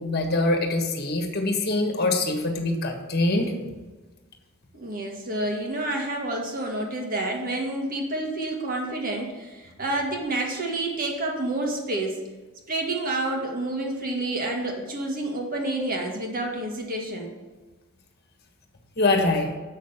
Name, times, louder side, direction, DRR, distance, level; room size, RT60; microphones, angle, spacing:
voice 1, 0.0-3.5 19.0-19.5, left 2 dB, 45° left, 4 dB, 1.5 m, -24 dB
voice 2, 4.7-12.2 12.7-17.3, right 2 dB, 40° right, 1 dB, 1.8 m, -29 dB
7.5 x 6.3 x 7.2 m, 1.3 s
head